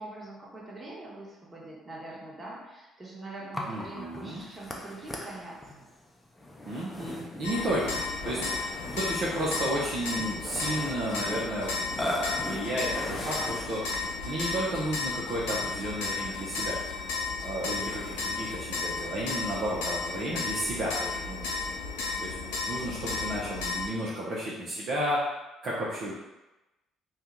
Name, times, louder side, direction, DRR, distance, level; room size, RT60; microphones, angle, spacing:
voice 1, 0.0-5.9, right 2 dB, 30° right, -5 dB, 1.2 m, -43 dB
Burping eructation, 3.5-14.2, left 1 dB, 20° left, 0.6 m, -38 dB
voice 2, 3.7-4.4 6.6-8.4 8.9-13.8 14.3-16.7 17.4-21.5 22.2-22.3 22.7-25.3 25.6-26.1, right 1 dB, 55° right, -7 dB, 0.7 m, -32 dB
sound 1, 7.4-23.9, left 4 dB, 85° left, 0.7 m, -34 dB
2.7 x 2.4 x 3.6 m, 1.0 s
hypercardioid pair, 60°, 0 cm